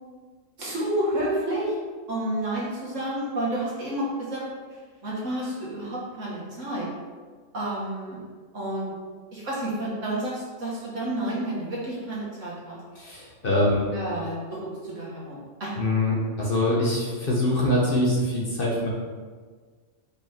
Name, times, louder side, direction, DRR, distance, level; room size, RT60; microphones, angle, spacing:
voice 1, 0.6-1.8 2.1-4.5 5.0-6.9 7.5-8.2 8.5-8.9 9.3-12.8 13.7-15.7, right 1 dB, 65° right, -6 dB, 2.1 m, -30 dB
voice 2, 12.9-13.8 15.8-18.9, left 1 dB, 40° left, -4 dB, 1.4 m, -24 dB
5.2 x 5.1 x 4.4 m, 1.5 s
omnidirectional pair, 1.4 m